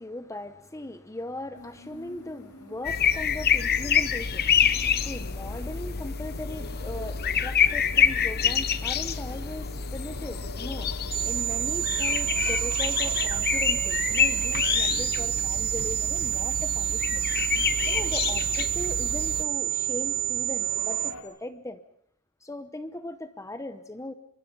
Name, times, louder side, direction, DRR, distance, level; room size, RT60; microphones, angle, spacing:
voice 1, 0.0-10.9 11.2-17.2 17.6-21.8 22.4-24.1, left 1 dB, 15° left, 0.9 m, -39 dB
sound 1, 1.5-21.2, left 2 dB, 90° left, 3.5 m, -46 dB
sound 2, 2.8-19.4, left 7 dB, 45° left, 0.9 m, -27 dB
sound 3, 11.1-21.1, right 11 dB, 15° right, 3.3 m, -28 dB
25.0 x 23.5 x 5.4 m
head